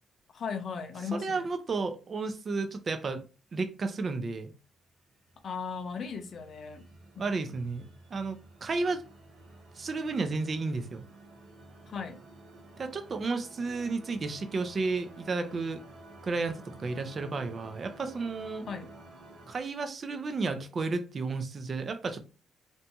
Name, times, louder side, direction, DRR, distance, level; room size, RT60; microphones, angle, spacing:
voice 1, 0.3-1.5 5.4-6.8 7.2-7.3 11.9-12.2 18.7-18.9, left 5 dB, 55° left, 0.5 m, -37 dB
voice 2, 1.1-3.2 3.5-4.5 7.2-7.8 8.1-9.0 9.8-11.0 12.8-15.8 16.2-18.6 19.5-22.2, right 3 dB, 40° right, 0.5 m, -32 dB
sound 1, 5.2-19.5, right 1 dB, 75° right, 0.8 m, -52 dB
2.6 x 2.2 x 2.7 m
cardioid pair, 90°, 0 cm